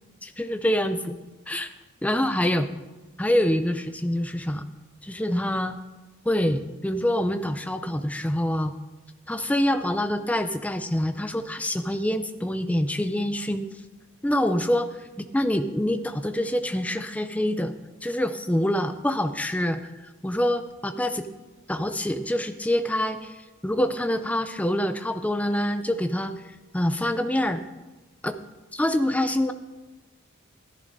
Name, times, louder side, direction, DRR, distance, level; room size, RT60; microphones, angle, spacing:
voice 1, 0.2-1.2 1.5-1.7 2.0-2.7 3.2-4.6 5.0-5.8 6.3-8.7 9.3-13.7 14.2-17.7 18.0-19.8 20.2-21.3 21.7-23.4 23.6-26.3 26.7-27.6 28.2-28.4 28.7-29.5, left 1 dB, 5° left, 9 dB, 0.4 m, -25 dB
14.5 x 10.5 x 2.7 m, 1.2 s
head